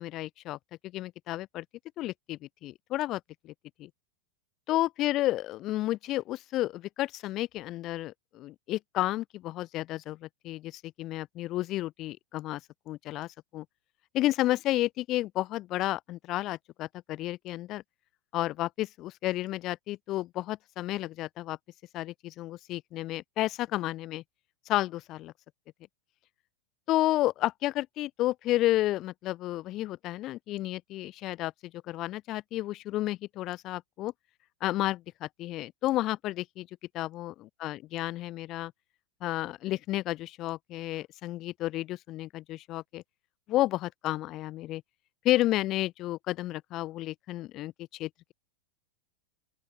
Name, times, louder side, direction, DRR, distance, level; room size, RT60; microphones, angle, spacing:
voice 1, 0.0-1.6 2.0-3.5 3.8-3.9 4.7-12.6 12.9-13.6 14.1-17.8 18.3-21.6 21.9-24.2 24.7-25.3 26.9-34.1 34.6-36.7 36.9-37.3 37.6-38.7 39.2-43.0 43.5-44.8 45.2-48.3, left 16 dB, 35° left, 3.2 m, -31 dB
open air
figure-of-eight pair, 90°, 0 cm